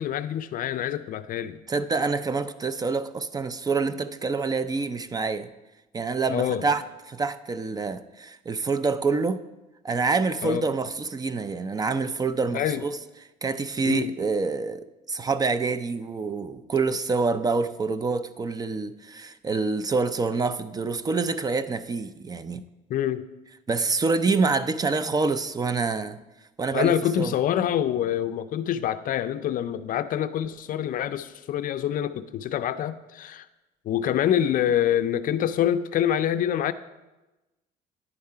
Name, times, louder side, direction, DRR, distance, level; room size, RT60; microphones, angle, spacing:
voice 1, 0.0-1.6 6.3-6.7 10.4-10.7 12.5-12.8 13.9-14.1 22.9-23.2 26.7-33.5 33.8-36.7, left 10 dB, 55° left, 0.4 m, -26 dB
voice 2, 1.7-5.5 5.9-9.4 9.8-13.0 13.4-22.6 23.7-26.2 26.6-27.3, right 4 dB, 20° right, 0.4 m, -26 dB
9.7 x 4.7 x 5.6 m
cardioid pair, 110°, 17 cm